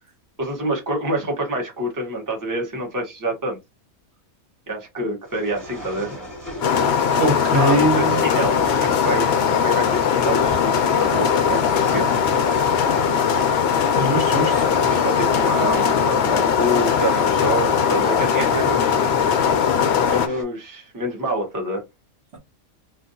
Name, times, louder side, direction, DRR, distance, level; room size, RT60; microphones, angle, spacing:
voice 1, 0.4-3.6 4.7-6.2 7.5-12.1 15.0-19.0 20.1-21.8, right 1 dB, 15° right, 1.0 m, -27 dB
sound 1, 5.2-20.4, equal, ahead, 1.5 m, -36 dB
sound 2, 6.6-20.3, left 7 dB, 65° left, 0.7 m, -19 dB
voice 2, 6.8-8.3 14.0-14.8 22.3-22.4, right 1 dB, 55° right, 1.1 m, -23 dB
3.1 x 2.6 x 2.7 m
omnidirectional pair, 1.5 m